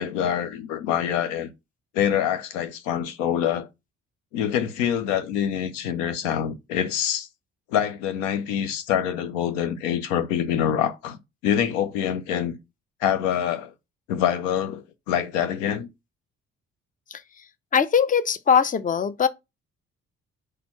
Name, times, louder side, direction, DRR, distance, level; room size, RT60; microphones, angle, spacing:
voice 1, 0.0-1.5 1.9-3.7 4.3-7.3 7.7-12.6 13.0-13.7 14.1-15.9, left 9 dB, 75° left, 0.8 m, -25 dB
voice 2, 17.7-19.3, left 7 dB, 20° left, 0.6 m, -21 dB
5.0 x 4.3 x 5.6 m
hypercardioid pair, 45°, 38 cm